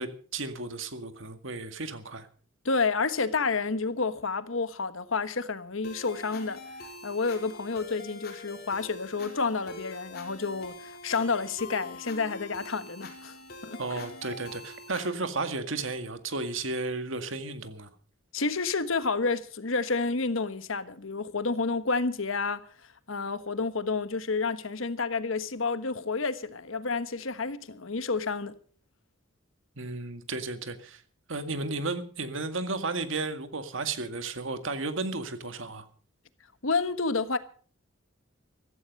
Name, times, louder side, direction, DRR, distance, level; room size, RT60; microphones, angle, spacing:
voice 1, 0.0-2.3 13.8-17.9 29.8-31.0 31.3-35.9, right 3 dB, 70° right, 2.0 m, -33 dB
voice 2, 2.6-6.6 7.0-13.4 13.6-14.0 18.3-22.6 23.1-28.5 36.6-37.4, left 4 dB, 75° left, 1.3 m, -30 dB
sound 1, 5.8-15.1, left 2 dB, 50° left, 4.1 m, -44 dB
15.5 x 14.0 x 5.4 m
head